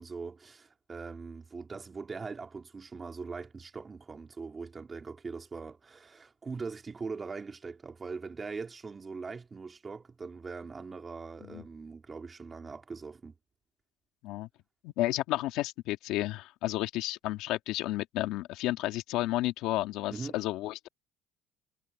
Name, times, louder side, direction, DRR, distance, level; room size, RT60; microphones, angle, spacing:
voice 1, 0.0-13.3 20.1-20.4, right 4 dB, 20° right, 3.7 m, -41 dB
voice 2, 14.8-20.9, left 16 dB, 70° left, 2.2 m, -32 dB
cardioid pair, 120°, 0 cm